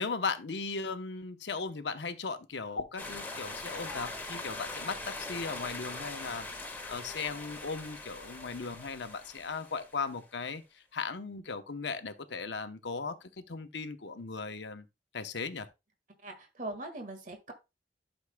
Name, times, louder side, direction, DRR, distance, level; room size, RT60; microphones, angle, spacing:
voice 1, 0.0-14.9 15.1-15.7, left 4 dB, 80° left, 0.9 m, -37 dB
sound 1, 3.0-10.2, left 2 dB, 10° left, 1.6 m, -42 dB
voice 2, 16.2-17.5, right 2 dB, 50° right, 1.7 m, -41 dB
12.0 x 6.2 x 2.2 m
head